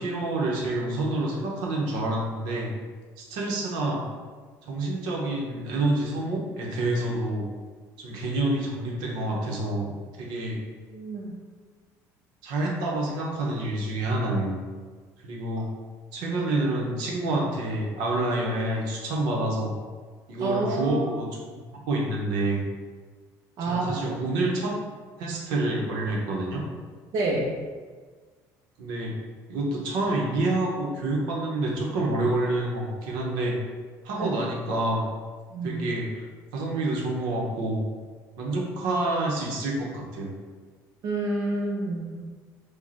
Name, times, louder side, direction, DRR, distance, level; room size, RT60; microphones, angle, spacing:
voice 1, 0.0-2.7 3.2-4.1 4.6-7.5 8.0-9.9 10.2-10.6 12.4-14.5 15.2-15.7 16.1-19.8 20.3-21.3 21.9-22.6 23.7-24.7 25.2-26.6 28.8-29.2 29.5-33.6 34.0-35.1 35.6-36.2 36.5-37.8 38.4-40.3, right 2 dB, 90° right, -2 dB, 1.0 m, -28 dB
voice 2, 10.9-11.4 16.2-16.3 20.4-21.0 23.6-23.9 27.1-27.6 34.2-34.3 35.5-35.8 41.0-42.3, right 2 dB, 55° right, -2 dB, 0.8 m, -28 dB
5.1 x 2.3 x 4.3 m, 1.5 s
cardioid pair, 155°, 7 cm